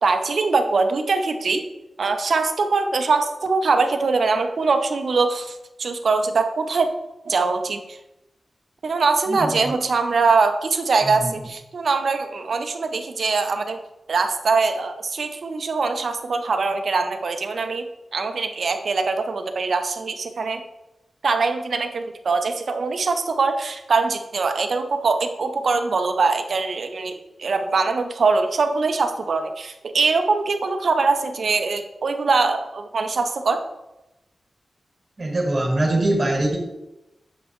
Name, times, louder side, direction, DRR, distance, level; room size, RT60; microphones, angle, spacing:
voice 1, 0.0-1.7 2.0-6.9 7.3-8.0 8.8-13.8 14.1-20.6 21.2-33.6, right 4 dB, 60° right, 6 dB, 0.6 m, -22 dB
voice 2, 9.3-9.7 11.1-11.3 35.2-36.6, right 1 dB, 30° right, -1 dB, 1.6 m, -23 dB
7.3 x 5.0 x 3.1 m, 0.95 s
wide cardioid pair, 180°, 0 cm